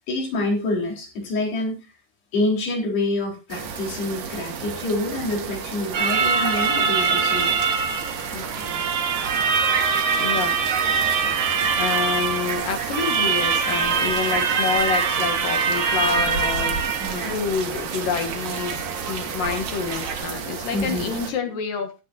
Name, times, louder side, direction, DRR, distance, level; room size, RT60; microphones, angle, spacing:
voice 1, 0.1-1.9 2.3-7.6 17.0-17.3 20.7-21.1, left 2 dB, 80° left, 0 dB, 6.1 m, -27 dB
sound 1, 3.5-21.3, right 6 dB, 80° right, 4.1 m, -33 dB
sound 2, 5.9-20.3, right 6 dB, 55° right, 2.6 m, -24 dB
voice 2, 8.3-9.0 10.2-10.6 11.8-22.0, left 6 dB, 65° left, 6 dB, 3.0 m, -28 dB
18.0 x 9.9 x 2.6 m, 0.28 s
omnidirectional pair, 4.6 m